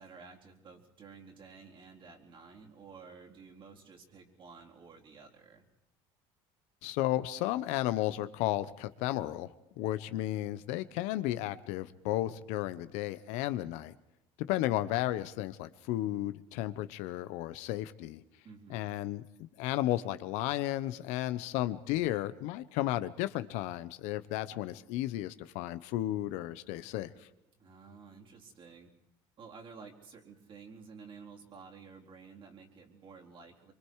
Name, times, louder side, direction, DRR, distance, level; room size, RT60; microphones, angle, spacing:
voice 1, 0.0-5.7 18.4-18.8 27.6-28.9 29.4-33.7, right 5 dB, 45° right, -1 dB, 4.2 m, -52 dB
voice 2, 6.8-13.9 14.4-18.2 18.7-19.2 19.6-27.1, left 15 dB, 75° left, 13 dB, 1.0 m, -33 dB
25.0 x 24.0 x 4.8 m, 0.88 s
supercardioid pair, 105°, 12 cm